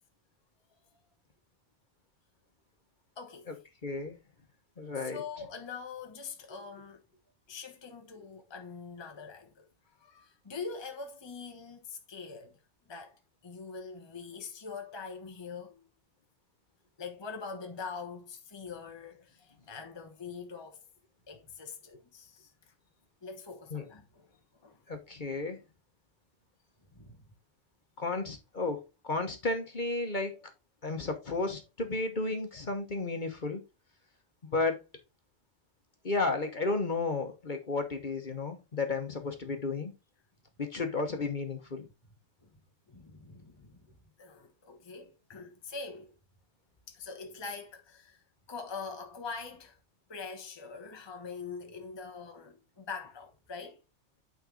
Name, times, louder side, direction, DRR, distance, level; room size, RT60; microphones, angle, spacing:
voice 1, 3.2-3.5 4.9-7.0 7.5-9.6 10.0-12.5 12.9-15.9 17.0-20.8 21.3-22.5 23.2-24.8 26.9-27.3 42.4-42.5 42.9-43.9 44.2-46.1 46.9-48.2 48.5-49.8 50.1-53.8, left 5 dB, 25° left, 1.0 m, -43 dB
voice 2, 3.8-4.2 4.8-5.2 23.7-23.8 24.9-25.6 28.0-30.5 30.8-33.6 34.4-34.8 36.0-39.9 40.6-41.9, left 3 dB, 40° left, 1.2 m, -33 dB
8.9 x 4.1 x 3.8 m
omnidirectional pair, 1.3 m